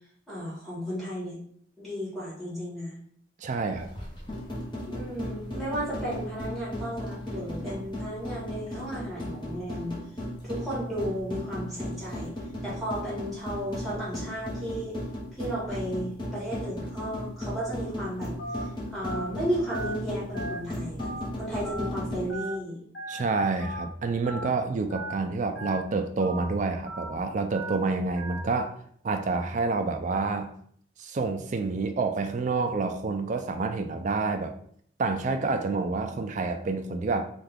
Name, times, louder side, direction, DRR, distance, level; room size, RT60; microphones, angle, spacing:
voice 1, 0.3-1.4 1.8-2.9 4.9-9.9 10.4-12.3 12.6-15.0 15.4-18.3 18.6-22.8, equal, ahead, -8 dB, 1.4 m, -34 dB
voice 2, 3.4-3.9 23.1-28.8 29.0-30.5 31.0-34.5 35.0-37.3, right 3 dB, 40° right, 6 dB, 0.3 m, -28 dB
sound 1, 3.7-22.3, left 1 dB, 25° left, 0.7 m, -36 dB
Telephone, 18.4-18.6 19.0-19.3 19.7-19.9 20.3-20.6 21.0-21.2 21.6-21.9 22.3-22.5 22.9-23.2 23.6-23.8 24.2-24.5 24.9-25.1 25.5-25.8 26.2-26.4 26.9-27.1 27.5-27.7 28.2-28.4, right 1 dB, 60° left, 0.9 m, -37 dB
2.7 x 2.4 x 3.4 m, 0.63 s
head